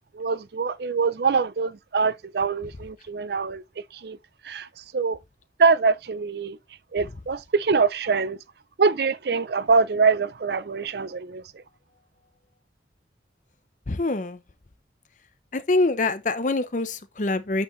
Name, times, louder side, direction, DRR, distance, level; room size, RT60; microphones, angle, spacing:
voice 1, 0.1-3.6 3.9-4.2 4.4-5.2 5.6-6.6 6.9-8.4 8.8-11.6, right 4 dB, 60° right, 0.5 m, -24 dB
voice 2, 13.9-14.4 15.5-17.6, left 2 dB, 45° left, 0.7 m, -25 dB
8.6 x 4.5 x 3.1 m
head